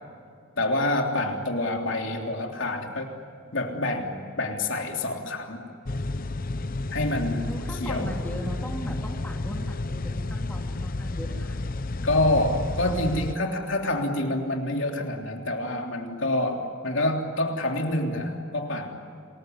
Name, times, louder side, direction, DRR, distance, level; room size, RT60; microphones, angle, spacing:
voice 1, 0.6-3.1 3.5-5.6 6.9-7.5 7.8-8.1 12.0-19.0, left 1 dB, 60° left, 2 dB, 3.4 m, -27 dB
sound 1, 5.8-13.3, left 2 dB, 40° left, 0.7 m, -31 dB
voice 2, 7.4-11.6, equal, 10° left, 0 dB, 2.6 m, -38 dB
28.0 x 21.0 x 9.6 m, 2.4 s
head